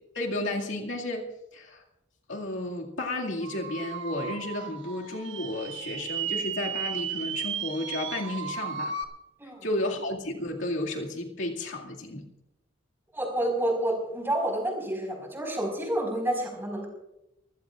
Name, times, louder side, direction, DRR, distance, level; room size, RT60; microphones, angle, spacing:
voice 1, 0.1-1.3 1.5-1.8 2.3-8.9 9.6-12.3, left 1 dB, 85° left, 0 dB, 2.2 m, -32 dB
sound 1, 3.4-9.0, right 7 dB, 65° right, 1.4 m, -35 dB
voice 2, 13.1-16.9, right 1 dB, 10° right, 1 dB, 4.8 m, -29 dB
26.0 x 16.0 x 2.5 m, 0.88 s
head